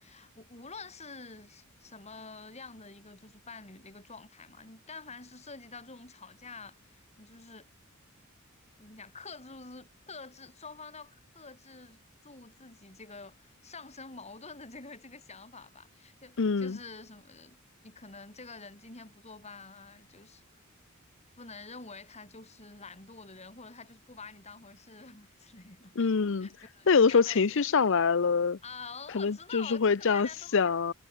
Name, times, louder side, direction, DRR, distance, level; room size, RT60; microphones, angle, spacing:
voice 1, 0.0-7.7 8.8-17.6 17.8-20.4 21.4-27.6 28.6-30.6, left 4 dB, 30° left, 5.4 m, -48 dB
voice 2, 16.4-16.8 26.0-26.5 26.9-28.6 29.1-30.9, left 5 dB, 65° left, 0.6 m, -25 dB
head